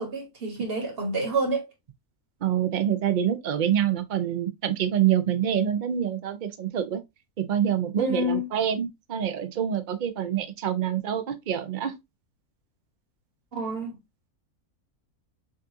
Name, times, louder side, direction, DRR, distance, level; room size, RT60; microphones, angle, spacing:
voice 1, 0.0-1.7 8.0-8.5 13.5-14.0, right 1 dB, 45° right, 1.3 m, -28 dB
voice 2, 2.4-7.0 7.4-11.9, right 9 dB, 65° right, 0.4 m, -26 dB
6.3 x 2.5 x 2.6 m
omnidirectional pair, 1.6 m